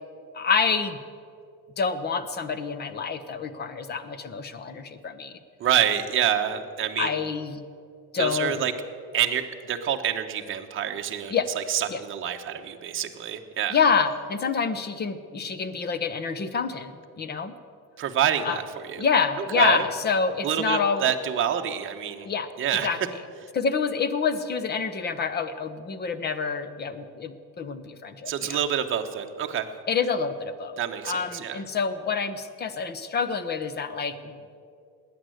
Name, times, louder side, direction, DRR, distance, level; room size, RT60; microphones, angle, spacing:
voice 1, 0.3-1.0 1.8-5.4 7.0-7.6 8.1-8.7 11.3-11.5 11.9-12.0 13.7-17.5 18.5-18.6 19.0-21.0 22.3-22.5 22.8-23.0 23.5-28.6 29.9-30.8 31.0-34.3, left 5 dB, 25° left, 13 dB, 0.7 m, -27 dB
voice 2, 5.6-7.2 8.2-8.7 9.1-13.8 18.0-19.0 19.5-19.8 20.4-22.3 22.6-22.9 23.4-23.5 28.3-29.7 30.8-31.6, right 9 dB, 30° right, 4 dB, 1.0 m, -27 dB
19.5 x 9.5 x 7.8 m, 2.5 s
cardioid pair, 170°, 40 cm